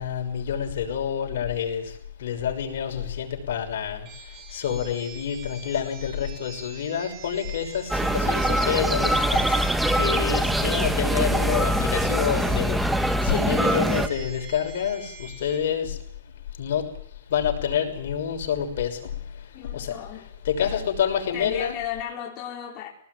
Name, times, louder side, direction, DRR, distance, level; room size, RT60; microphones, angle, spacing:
voice 1, 0.0-16.0 16.6-20.0 20.4-21.8, left 8 dB, 70° left, 3 dB, 6.0 m, -28 dB
sound 1, 4.1-15.6, right 5 dB, 30° right, 3.0 m, -45 dB
sound 2, 7.9-14.1, right 1 dB, 5° right, 1.3 m, -23 dB
voice 2, 19.5-20.3 20.6-20.9 21.3-22.9, left 10 dB, 30° left, -1 dB, 4.4 m, -35 dB
23.5 x 19.0 x 9.5 m, 0.66 s
supercardioid pair, 155°, 0 cm